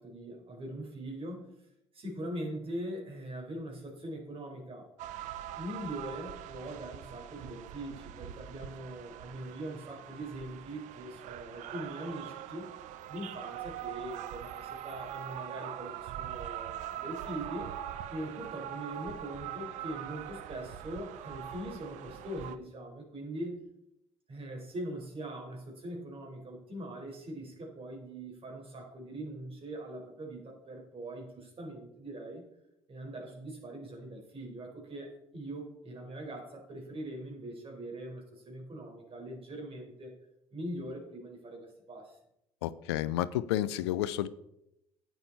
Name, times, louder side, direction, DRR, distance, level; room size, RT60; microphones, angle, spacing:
voice 1, 0.0-1.6 1.9-4.9 5.6-12.7 13.1-17.7 18.1-23.6 24.3-32.4 32.9-40.1 40.5-42.2, right 1 dB, 45° right, 0 dB, 4.7 m, -42 dB
sound 1, 5.0-22.6, right 11 dB, 65° right, 0.7 m, -42 dB
voice 2, 42.6-44.3, left 13 dB, 80° left, 16 dB, 0.5 m, -31 dB
11.0 x 9.4 x 4.2 m, 0.84 s
hypercardioid pair, 50°, 14 cm